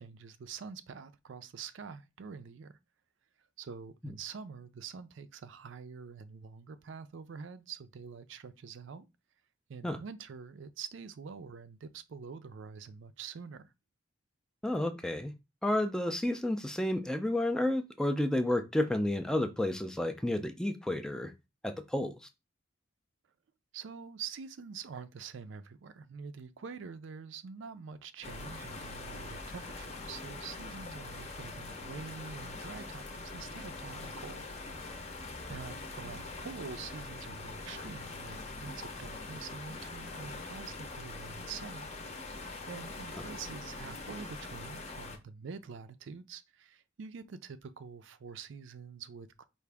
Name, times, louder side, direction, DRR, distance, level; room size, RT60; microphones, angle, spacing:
voice 1, 0.0-2.8 3.6-9.1 9.7-13.7 23.7-34.5 35.5-41.9 42.3-49.4, right 6 dB, 65° right, 0.4 m, -46 dB
voice 2, 14.6-15.3 15.6-21.3 21.6-22.2, left 1 dB, 5° left, 0.3 m, -31 dB
sound 1, 28.2-45.2, left 3 dB, 35° left, 0.7 m, -43 dB
4.8 x 2.5 x 3.4 m
head